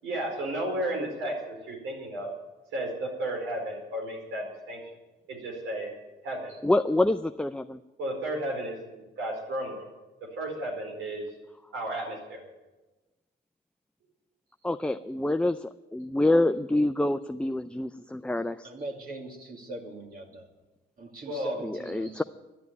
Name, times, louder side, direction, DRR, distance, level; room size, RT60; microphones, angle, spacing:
voice 1, 0.0-2.3 2.7-4.9 5.3-5.9 6.2-6.6 8.0-9.9 10.4-11.3 11.7-12.4 21.2-21.5 22.0-22.1, right 1 dB, 90° right, 0 dB, 4.8 m, -33 dB
voice 2, 6.6-7.8 14.6-18.7 21.6-22.2, left 1 dB, 5° left, 9 dB, 0.4 m, -26 dB
voice 3, 18.6-20.5 21.0-22.2, right 2 dB, 45° right, 1 dB, 2.4 m, -40 dB
11.5 x 11.0 x 9.4 m, 1.1 s
cardioid pair, 90°, 20 cm